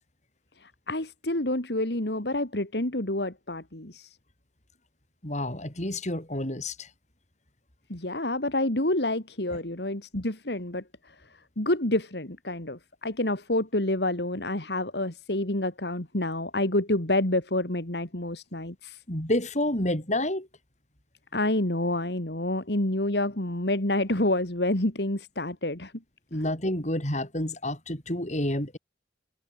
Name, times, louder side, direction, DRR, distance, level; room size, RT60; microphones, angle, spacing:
voice 1, 0.6-4.1 7.9-10.8 11.6-19.0 21.3-25.9, left 1 dB, 65° left, 3.1 m, -28 dB
voice 2, 5.2-6.9 19.1-20.5 26.3-28.8, left 1 dB, 40° left, 6.9 m, -29 dB
head